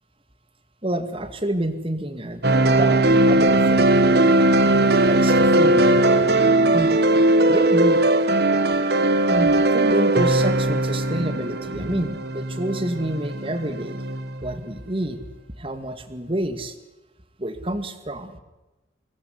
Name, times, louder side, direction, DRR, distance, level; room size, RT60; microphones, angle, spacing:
voice 1, 0.8-5.9 6.7-7.0 7.4-8.1 9.3-14.0 14.4-15.2 15.6-16.8 17.4-18.4, right 1 dB, 30° right, 9 dB, 2.3 m, -28 dB
sound 1, 2.4-14.5, right 2 dB, 55° right, 1.6 m, -19 dB
25.0 x 19.5 x 9.7 m, 1.1 s
head